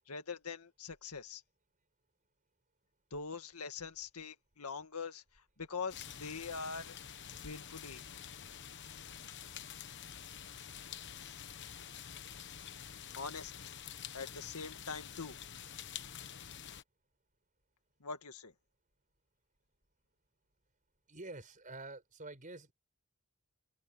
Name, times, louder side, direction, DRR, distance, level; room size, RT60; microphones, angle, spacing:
voice 1, 0.1-1.4 3.1-5.2 5.6-7.0 7.4-8.1 11.2-11.4 13.2-13.8 14.1-15.4 18.0-18.5, left 5 dB, 85° left, 1.9 m, -43 dB
sound 1, 5.9-16.8, left 8 dB, 55° left, 1.2 m, -48 dB
voice 2, 21.1-22.7, right 2 dB, 35° right, 5.3 m, -47 dB
head